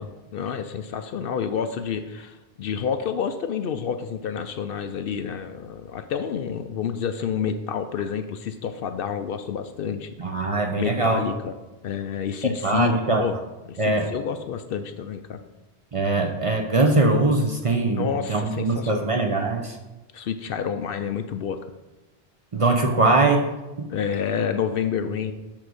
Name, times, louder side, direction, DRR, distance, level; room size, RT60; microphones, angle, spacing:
voice 1, 0.0-10.1 10.8-11.6 11.8-13.3 13.7-15.4 17.9-19.2 20.1-21.6 23.9-25.3, left 7 dB, 65° left, 9 dB, 0.7 m, -29 dB
voice 2, 10.2-11.2 12.4-13.3 13.8-14.1 15.9-19.8 22.5-23.4 23.8-23.9, right 2 dB, 35° right, 3 dB, 0.7 m, -22 dB
7.5 x 3.8 x 6.3 m, 1.0 s
omnidirectional pair, 1.1 m